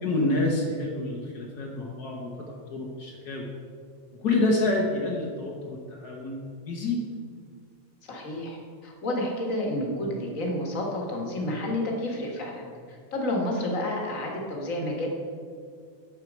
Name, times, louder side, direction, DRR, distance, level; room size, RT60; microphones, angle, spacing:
voice 1, 0.0-2.3 2.7-3.5 4.2-7.0, left 2 dB, 65° left, -2 dB, 0.9 m, -28 dB
voice 2, 8.1-15.1, left 1 dB, 35° left, 0 dB, 1.3 m, -30 dB
11.5 x 4.6 x 7.3 m, 2.1 s
omnidirectional pair, 3.4 m